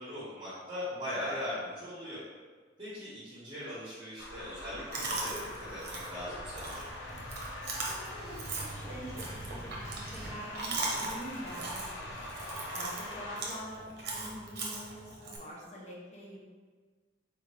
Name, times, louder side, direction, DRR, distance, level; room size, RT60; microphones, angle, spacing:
voice 1, 0.0-2.2 2.8-6.9, left 1 dB, 25° right, -11 dB, 1.4 m, -40 dB
sound 1, 4.2-13.4, left 1 dB, 80° left, 0.7 m, -44 dB
Chewing mastication, 4.9-15.4, right 2 dB, 55° right, 0.9 m, -39 dB
voice 2, 7.9-12.3 12.7-16.4, equal, 35° left, -4 dB, 0.9 m, -45 dB
4.3 x 3.7 x 3.3 m, 1.4 s
head